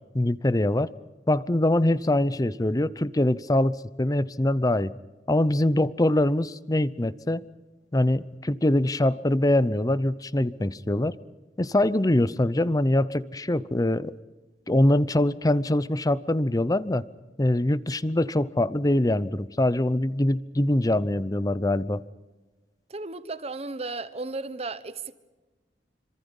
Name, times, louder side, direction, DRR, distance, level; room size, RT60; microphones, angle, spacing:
voice 1, 0.1-0.9 1.3-4.9 5.3-7.4 7.9-11.2 11.6-14.1 14.7-17.0 17.4-22.0, left 1 dB, 20° left, 0.7 m, -23 dB
voice 2, 22.9-25.1, right 3 dB, 35° right, 1.1 m, -34 dB
27.5 x 26.0 x 5.4 m
head